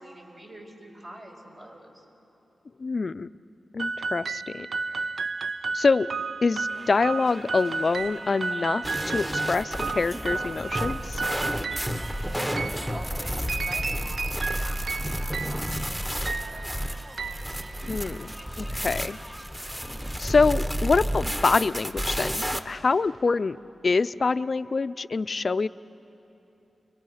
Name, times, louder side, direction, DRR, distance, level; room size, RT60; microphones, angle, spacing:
voice 1, 0.0-2.1 12.4-17.2, right 1 dB, 50° right, -1 dB, 5.5 m, -46 dB
voice 2, 2.8-3.3 3.7-4.7 5.7-6.1 6.4-11.2 17.9-19.2 20.2-23.6 23.8-25.7, left 4 dB, 55° left, 15 dB, 0.5 m, -25 dB
sound 1, 3.8-18.2, right 4 dB, 65° right, 0.5 m, -33 dB
sound 2, 6.7-20.6, right 1 dB, 35° right, 1.7 m, -46 dB
sound 3, 8.8-22.6, equal, 10° right, 1.3 m, -31 dB
30.0 x 22.5 x 5.7 m, 2.9 s
cardioid pair, 55°, 0 cm